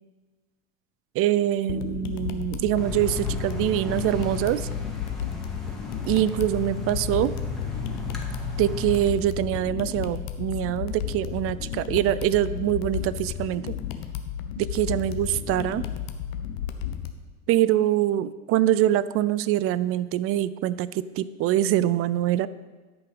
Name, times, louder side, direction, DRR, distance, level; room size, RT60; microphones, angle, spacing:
voice 1, 1.1-4.7 6.0-7.3 8.6-13.7 14.6-15.8 17.5-22.5, right 12 dB, 35° right, 17 dB, 0.4 m, -24 dB
sound 1, 1.7-17.1, left 9 dB, 60° left, 1.1 m, -33 dB
sound 2, 2.7-9.1, left 2 dB, ahead, 2.2 m, -35 dB
13.0 x 5.6 x 5.1 m, 1.3 s
hypercardioid pair, 80°, 41 cm